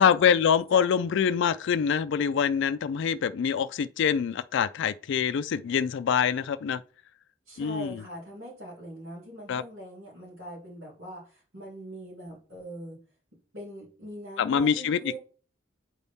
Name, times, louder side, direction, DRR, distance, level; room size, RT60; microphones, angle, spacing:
voice 1, 0.0-6.8 7.6-8.0 9.5-9.6 14.4-15.2, left 7 dB, 65° left, 0.3 m, -25 dB
voice 2, 7.5-13.0 13.5-15.2, equal, 80° right, 3.3 m, -41 dB
8.8 x 4.1 x 3.5 m
head